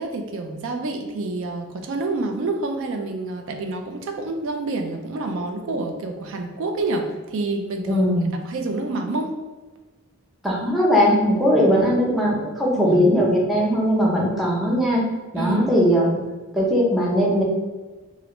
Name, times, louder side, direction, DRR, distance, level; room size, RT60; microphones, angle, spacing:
voice 1, 0.0-8.1 8.4-9.3 11.7-11.9 12.7-13.0 15.4-15.7, right 2 dB, 60° right, 4 dB, 0.4 m, -28 dB
voice 2, 7.9-8.3 10.4-15.0 15.3-16.2 16.5-17.4, equal, ahead, -4 dB, 0.6 m, -19 dB
3.0 x 2.4 x 3.0 m, 1.2 s
head